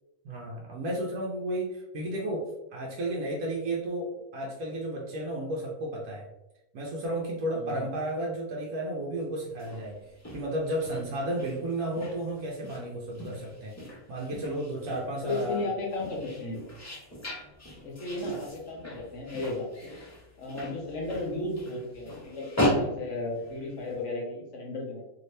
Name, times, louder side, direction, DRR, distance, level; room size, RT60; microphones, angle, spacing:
voice 1, 0.2-6.3 6.7-13.8 14.1-15.7, right 1 dB, 85° right, -3 dB, 1.2 m, -33 dB
voice 2, 7.5-7.9 15.2-16.6 17.8-19.9 20.4-25.0, left 2 dB, 60° left, -1 dB, 1.0 m, -34 dB
sound 1, 9.5-24.0, left 1 dB, 15° left, 0.6 m, -37 dB
2.9 x 2.7 x 3.1 m, 0.94 s
omnidirectional pair, 1.5 m